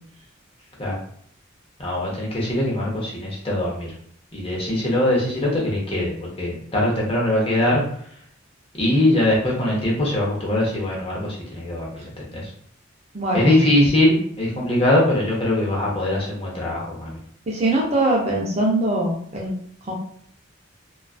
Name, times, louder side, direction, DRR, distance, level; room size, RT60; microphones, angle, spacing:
voice 1, 1.8-3.9 4.3-7.8 8.8-12.5 13.3-17.2, left 1 dB, 25° left, -4 dB, 0.7 m, -22 dB
voice 2, 13.1-13.6 17.5-19.5 19.9-20.0, right 1 dB, 30° right, -2 dB, 0.5 m, -22 dB
2.3 x 2.3 x 2.3 m, 0.62 s
head